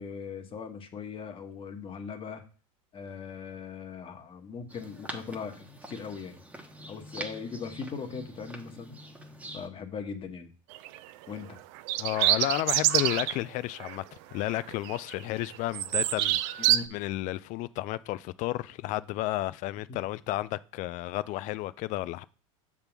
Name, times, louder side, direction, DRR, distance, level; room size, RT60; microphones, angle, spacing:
voice 1, 0.0-2.4 2.9-6.4 6.9-9.0 9.5-10.5 11.3-11.6 16.6-17.0 19.9-20.0, left 5 dB, 30° left, 1.3 m, -39 dB
sound 1, 4.7-9.7, right 1 dB, 10° right, 1.1 m, -45 dB
sound 2, 10.7-11.0 11.8-13.4 13.8-14.0 14.4-15.1 15.4-16.8, right 14 dB, 60° right, 0.5 m, -26 dB
voice 2, 12.0-14.0 14.3-22.2, left 16 dB, 45° left, 0.4 m, -32 dB
6.6 x 3.6 x 5.9 m
supercardioid pair, 115°, 18 cm